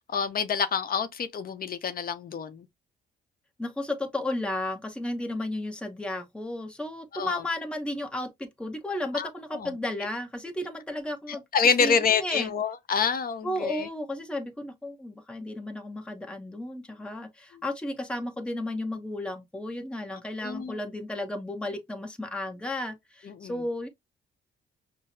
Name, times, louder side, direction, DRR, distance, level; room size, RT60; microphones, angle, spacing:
voice 1, 0.1-2.7 7.1-7.4 9.1-9.7 10.0-10.1 11.3-13.9 20.4-20.8 23.3-23.5, left 6 dB, 50° left, 0.7 m, -27 dB
voice 2, 3.6-11.4 11.8-12.5 13.4-23.9, left 1 dB, 5° left, 0.8 m, -33 dB
5.6 x 2.0 x 2.7 m
cardioid pair, 90°, 20 cm